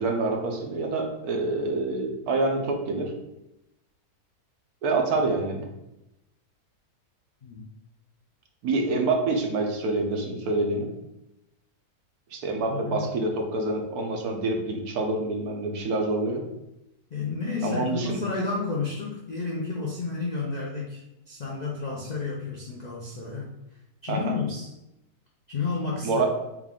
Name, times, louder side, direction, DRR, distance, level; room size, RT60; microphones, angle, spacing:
voice 1, 0.0-3.1 4.8-5.7 8.6-10.9 12.3-16.4 17.6-18.2 24.1-24.3 26.0-26.3, right 3 dB, 75° right, 2 dB, 1.3 m, -27 dB
voice 2, 12.7-13.1 17.1-21.0 21.3-23.5 24.0-24.7 25.5-26.2, left 4 dB, 75° left, -3 dB, 0.4 m, -31 dB
4.5 x 2.4 x 3.7 m, 0.88 s
omnidirectional pair, 1.6 m